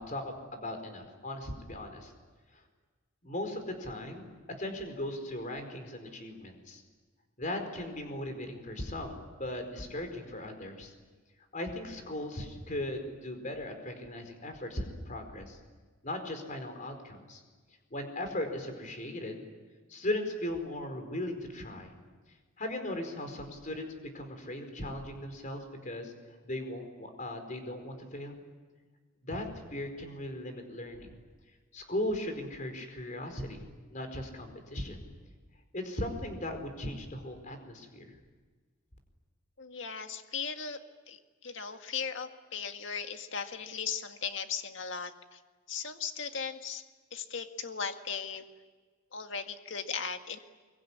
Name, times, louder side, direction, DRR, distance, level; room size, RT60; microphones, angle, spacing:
voice 1, 0.0-2.1 2.5-2.6 3.2-4.3 4.6-6.8 7.4-10.9 11.5-15.6 16.0-17.4 17.9-19.4 19.9-21.9 22.6-26.1 26.4-28.4 29.2-31.1 31.7-33.6 33.9-35.0 35.7-38.2, left 1 dB, 40° left, 6 dB, 4.7 m, -38 dB
voice 2, 39.6-40.8 41.1-45.4 45.7-46.8 47.1-48.4 49.1-50.4, left 6 dB, 60° left, 6 dB, 1.9 m, -37 dB
24.5 x 23.5 x 10.0 m, 1.4 s
head